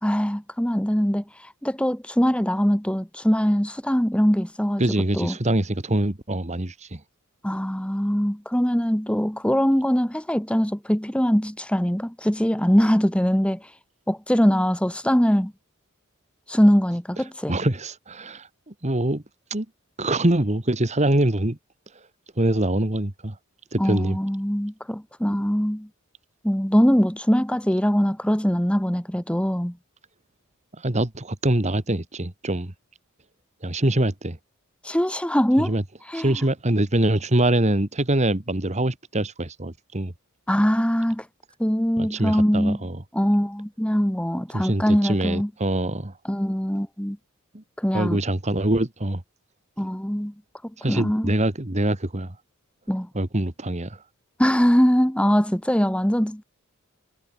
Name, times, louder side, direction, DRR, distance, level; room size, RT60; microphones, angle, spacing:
voice 1, 0.0-4.8 5.1-5.3 7.4-13.6 14.1-15.5 16.5-17.6 23.8-25.9 26.4-29.8 34.8-35.7 36.1-36.4 40.5-41.2 41.6-42.9 43.1-45.5 46.2-47.2 47.8-48.2 49.8-50.3 50.9-51.3 52.9-53.1 54.4-56.4, equal, 5° left, 1.5 m, -22 dB
voice 2, 4.8-7.0 17.5-19.2 19.5-19.7 20.0-21.6 22.4-23.3 23.7-24.2 30.8-32.7 33.6-34.4 35.7-35.8 36.1-40.1 42.0-43.0 44.5-46.1 47.5-47.6 47.9-49.2 50.8-52.3 53.1-54.0, right 1 dB, 35° right, 1.9 m, -24 dB
head